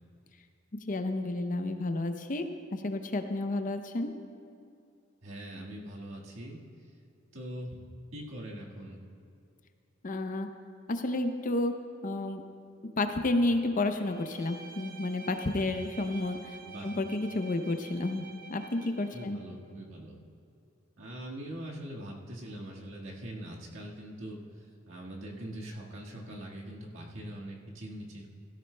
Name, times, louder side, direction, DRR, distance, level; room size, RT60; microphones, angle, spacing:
voice 1, 0.9-4.1 10.0-10.5 10.9-11.7 12.0-12.4 13.0-16.4 16.8-19.4, left 2 dB, 40° left, 7 dB, 0.6 m, -31 dB
voice 2, 5.2-6.6 7.3-7.8 8.1-9.0 16.6-16.9 19.1-20.2 21.0-24.4 24.9-28.3, right 1 dB, 75° right, -3 dB, 1.7 m, -42 dB
Bowed string instrument, 14.1-19.4, right 5 dB, 50° right, 0.9 m, -49 dB
16.0 x 13.5 x 2.2 m, 2.4 s
head